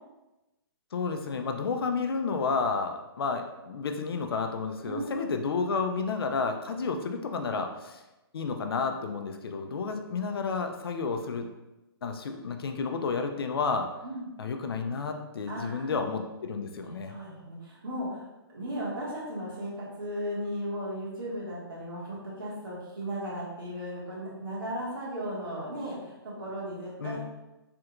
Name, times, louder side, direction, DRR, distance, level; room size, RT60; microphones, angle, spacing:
voice 1, 0.9-8.0 8.3-11.5 12.0-13.9 14.4-17.1 27.0-27.2, left 4 dB, 65° left, 5 dB, 0.4 m, -31 dB
voice 2, 4.8-5.4 14.0-14.3 15.5-15.9 16.8-18.3 18.5-27.2, equal, 55° right, -6 dB, 1.4 m, -36 dB
3.3 x 2.4 x 2.9 m, 1.0 s
hypercardioid pair, 175°, 13 cm